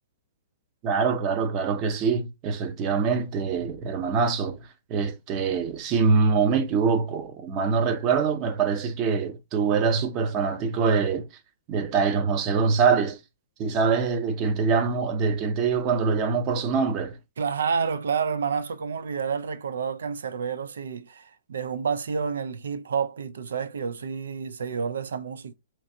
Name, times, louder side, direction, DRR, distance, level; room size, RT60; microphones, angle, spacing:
voice 1, 0.8-11.3 11.7-13.2 13.6-17.2, right 5 dB, 25° right, 0.7 m, -24 dB
voice 2, 17.4-25.5, right 6 dB, 85° right, 0.4 m, -29 dB
4.4 x 2.5 x 2.7 m
hypercardioid pair, 165°, 0 cm